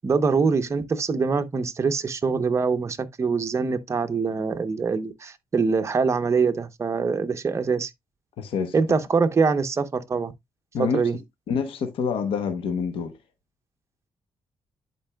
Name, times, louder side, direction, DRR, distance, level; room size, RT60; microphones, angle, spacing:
voice 1, 0.0-7.9 8.7-10.3 10.8-11.2, right 5 dB, 30° right, 0.8 m, -24 dB
voice 2, 8.4-8.7 10.7-11.1 11.5-13.2, left 6 dB, 90° left, 1.1 m, -27 dB
11.0 x 4.6 x 2.2 m
cardioid pair, 95°, 9 cm